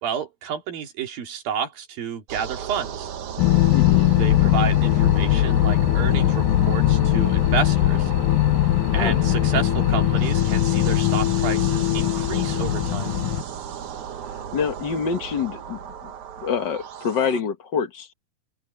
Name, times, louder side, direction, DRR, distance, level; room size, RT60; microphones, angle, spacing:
voice 1, 0.0-3.1 4.0-8.1 8.9-13.1, right 8 dB, 80° right, 4.3 m, -30 dB
sound 1, 2.3-17.4, right 8 dB, 65° right, 2.7 m, -35 dB
sound 2, 3.4-13.4, left 14 dB, 75° left, 2.2 m, -20 dB
voice 2, 3.7-4.1 8.9-9.2 14.5-15.8 16.4-18.1, left 6 dB, 60° left, 1.1 m, -26 dB
open air
omnidirectional pair, 4.1 m